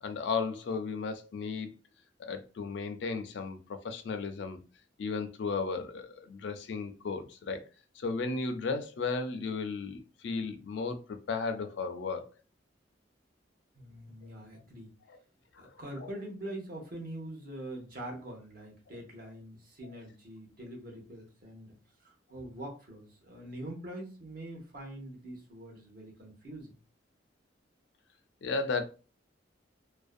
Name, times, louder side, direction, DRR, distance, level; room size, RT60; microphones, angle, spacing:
voice 1, 0.0-1.7 2.2-4.6 5.0-7.6 8.0-12.3 15.1-15.2 15.5-16.1 28.4-28.8, left 4 dB, 65° left, 0.4 m, -35 dB
voice 2, 13.7-14.9 15.6-21.8 22.0-26.8, right 1 dB, 50° right, 0.8 m, -44 dB
2.5 x 2.1 x 2.4 m
head